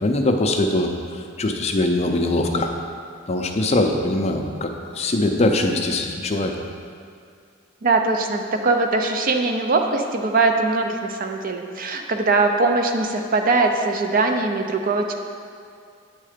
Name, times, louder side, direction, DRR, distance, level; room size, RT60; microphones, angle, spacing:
voice 1, 0.0-0.9 1.4-2.7 3.3-6.5, left 2 dB, 35° left, 3 dB, 0.5 m, -21 dB
voice 2, 7.8-15.1, right 3 dB, 45° right, 4 dB, 0.5 m, -21 dB
8.7 x 3.7 x 5.0 m, 2.3 s
head